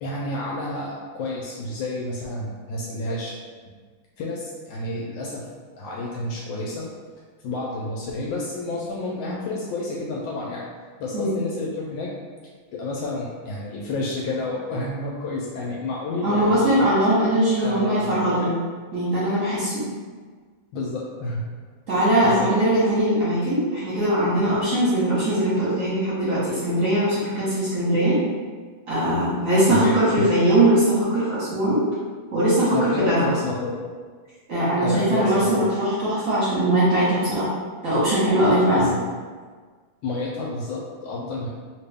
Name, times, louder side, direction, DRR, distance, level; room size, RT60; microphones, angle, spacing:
voice 1, 0.0-3.3 4.2-5.5 5.8-6.9 7.4-10.7 11.0-12.1 12.7-16.5 17.6-18.5 20.7-21.5 22.2-22.5 29.7-30.3 32.7-33.7 34.8-35.6 38.7-39.1 40.0-41.5, left 2 dB, 75° left, -3 dB, 1.2 m, -30 dB
voice 2, 16.2-18.5 18.9-19.8 21.9-28.2 28.9-31.8 32.3-33.3 34.5-37.5 37.8-38.9, right 1 dB, 50° right, -10 dB, 1.0 m, -21 dB
2.9 x 2.8 x 3.4 m, 1.5 s
omnidirectional pair, 2.3 m